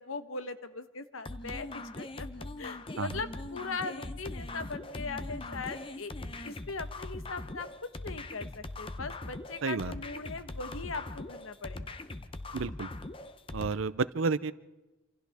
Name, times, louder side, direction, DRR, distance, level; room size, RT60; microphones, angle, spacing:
voice 1, 0.0-2.3 2.6-6.1 6.4-7.7 8.0-12.0, left 4 dB, 85° left, 10 dB, 1.2 m, -40 dB
sound 1, 1.2-13.7, left 2 dB, 25° left, 0.7 m, -41 dB
voice 2, 9.6-9.9 12.5-12.9 13.5-14.5, right 4 dB, 75° right, 16 dB, 0.6 m, -31 dB
27.5 x 27.0 x 3.5 m, 1.1 s
head